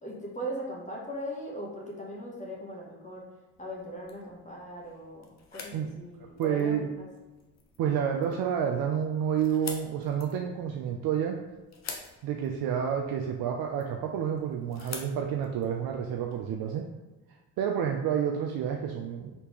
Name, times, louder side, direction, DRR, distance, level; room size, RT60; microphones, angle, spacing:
voice 1, 0.0-3.3 3.6-7.1, equal, 20° left, -3 dB, 1.1 m, -39 dB
sound 1, 3.5-16.4, left 5 dB, 45° left, 0.8 m, -48 dB
voice 2, 6.2-6.9 7.8-11.4 12.2-16.9 17.6-19.3, right 8 dB, 70° right, 2 dB, 0.5 m, -29 dB
4.2 x 3.4 x 3.0 m, 1.1 s
supercardioid pair, 75°, 38 cm